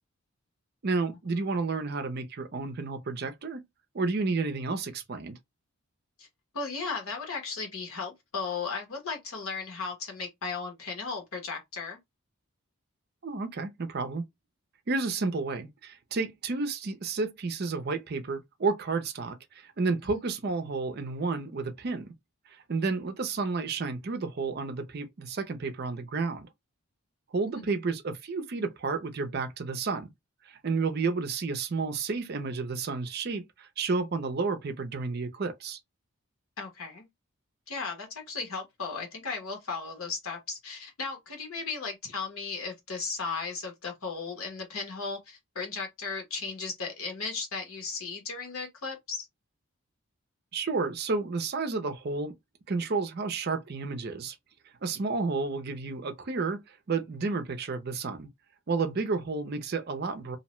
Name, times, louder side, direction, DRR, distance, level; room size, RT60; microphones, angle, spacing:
voice 1, 0.8-3.6 3.9-5.4 13.2-14.2 14.9-22.1 22.5-26.5 27.3-30.1 30.5-35.8 50.5-52.3 52.7-54.3 54.8-58.3 58.7-60.4, right 4 dB, 45° right, 0.5 m, -31 dB
voice 2, 6.5-12.0 27.5-27.6 36.6-37.1 37.7-49.3, left 4 dB, 80° left, 1.1 m, -36 dB
2.6 x 2.1 x 3.0 m
head